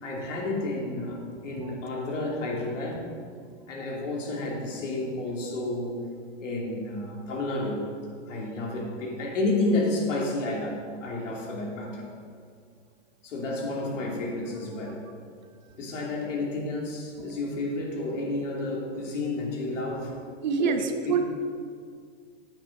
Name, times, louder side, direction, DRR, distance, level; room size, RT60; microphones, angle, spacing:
voice 1, 0.0-3.1 3.7-6.0 6.4-7.9 8.3-12.1 13.2-15.1 15.8-20.1 20.6-20.8, left 2 dB, 75° left, -2 dB, 3.2 m, -31 dB
voice 2, 20.4-21.4, right 5 dB, 40° right, 7 dB, 0.7 m, -28 dB
9.0 x 8.8 x 5.3 m, 2.1 s
supercardioid pair, 175°, 37 cm